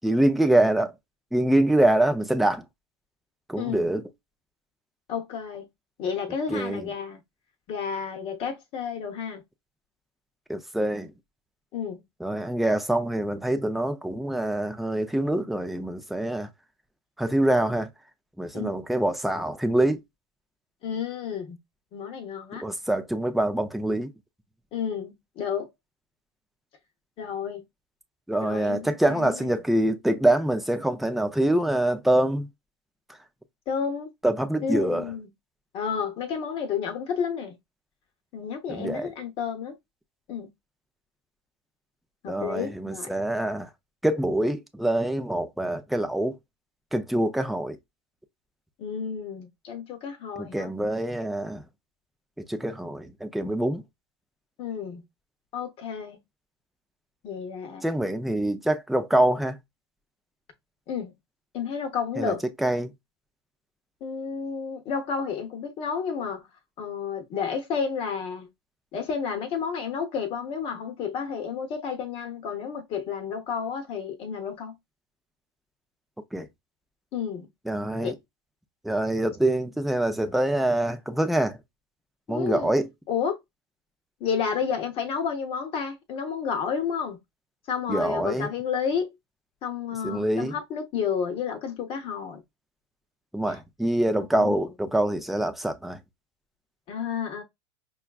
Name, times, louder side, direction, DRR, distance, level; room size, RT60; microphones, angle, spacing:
voice 1, 0.0-0.9 1.3-2.7 3.5-4.0 6.5-6.8 10.5-11.1 12.2-16.5 17.2-17.9 18.4-20.0 22.6-24.1 28.3-32.5 34.2-35.0 38.7-39.1 42.3-43.7 44.0-46.3 46.9-47.8 50.4-51.6 52.5-53.8 57.8-59.6 62.2-62.3 62.6-62.9 76.3-76.5 77.7-78.1 78.8-81.6 82.3-82.9 87.9-88.5 90.0-90.5 93.3-96.0, right 1 dB, ahead, 0.4 m, -25 dB
voice 2, 3.6-3.9 5.1-5.7 6.0-7.2 7.7-9.4 11.7-12.0 18.5-18.8 20.8-21.6 21.9-22.6 24.7-25.7 27.2-27.6 28.4-29.6 33.7-34.1 34.6-35.3 35.7-37.6 38.3-39.8 40.3-40.5 42.2-43.1 48.8-50.7 54.6-55.0 55.5-56.2 57.2-57.8 60.9-61.1 61.5-62.4 64.0-66.5 66.8-68.5 68.9-74.7 77.1-77.5 78.0-78.1 82.3-82.7 83.1-83.4 84.2-87.2 87.7-89.1 89.6-92.4 93.5-93.6 94.2-94.7 96.9-97.4, left 6 dB, 40° left, 0.8 m, -31 dB
5.5 x 2.3 x 2.3 m
supercardioid pair, 125°, 14 cm